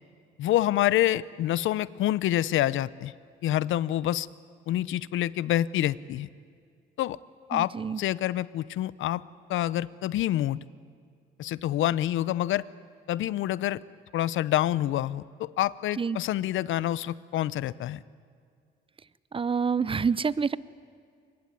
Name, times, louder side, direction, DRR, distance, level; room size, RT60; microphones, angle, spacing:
voice 1, 0.4-3.1 3.4-4.3 4.7-6.3 7.0-7.2 7.5-7.7 8.0-9.2 9.5-10.6 11.4-12.7 13.1-13.8 14.1-18.0, left 13 dB, 80° left, 20 dB, 0.7 m, -27 dB
voice 2, 7.5-8.0 16.0-16.2 19.3-20.6, right 5 dB, 25° right, 19 dB, 0.7 m, -27 dB
24.5 x 21.5 x 9.4 m, 2.2 s
cardioid pair, 90°, 20 cm